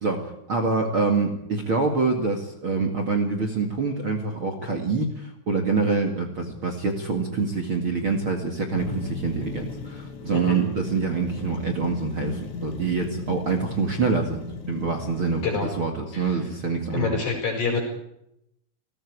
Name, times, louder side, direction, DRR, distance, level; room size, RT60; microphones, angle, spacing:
voice 1, 0.0-17.2, right 4 dB, 55° right, 4 dB, 1.5 m, -26 dB
sound 1, 8.8-15.6, left 4 dB, 75° left, 5.2 m, -36 dB
voice 2, 16.9-17.8, left 5 dB, 40° left, -1 dB, 6.8 m, -26 dB
30.0 x 19.5 x 4.8 m, 0.79 s
omnidirectional pair, 5.6 m